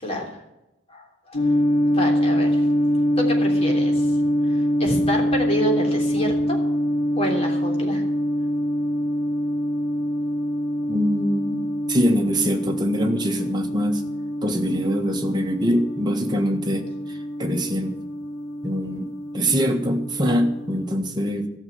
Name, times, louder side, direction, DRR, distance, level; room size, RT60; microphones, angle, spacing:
voice 1, 0.0-0.4 0.9-1.4 1.9-2.6 3.2-4.1 4.5-6.6 7.1-8.0, equal, 30° left, 0 dB, 3.3 m, -28 dB
sound 1, 1.3-20.9, equal, 90° left, 1.6 m, -24 dB
voice 2, 10.9-14.0 14.4-18.0 18.6-21.5, equal, 20° right, 3 dB, 1.5 m, -24 dB
13.5 x 6.7 x 9.5 m, 0.91 s
head